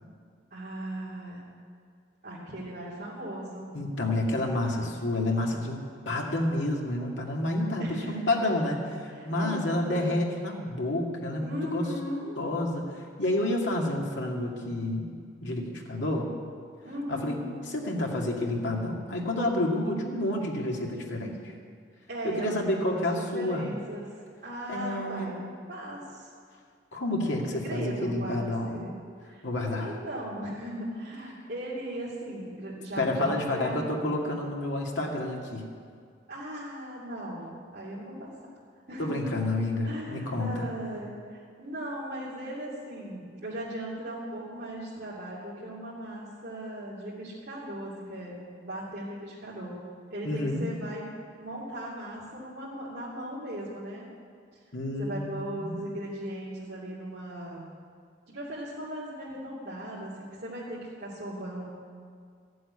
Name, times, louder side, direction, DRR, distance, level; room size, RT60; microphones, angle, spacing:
voice 1, 0.5-1.4 2.2-3.7 7.8-8.1 9.1-10.2 11.4-12.4 16.8-17.5 22.1-23.0 23.3-24.1 24.4-25.4 25.7-26.3 27.6-29.0 29.2-29.4 29.8-33.9 36.3-38.3 38.9-39.2 39.8-48.3 48.6-49.7 50.1-51.0 51.4-54.1 55.0-57.7 58.3-61.8, right 1 dB, 55° right, -10 dB, 2.9 m, -38 dB
voice 2, 3.7-11.9 12.4-15.0 15.4-16.3 17.1-17.4 17.7-21.5 22.2-23.7 24.7-25.4 26.9-28.9 29.4-29.9 33.0-35.6 39.0-40.7 50.2-50.7 54.7-55.8, left 1 dB, 70° left, -1 dB, 2.2 m, -29 dB
14.5 x 7.8 x 9.7 m, 2.1 s
head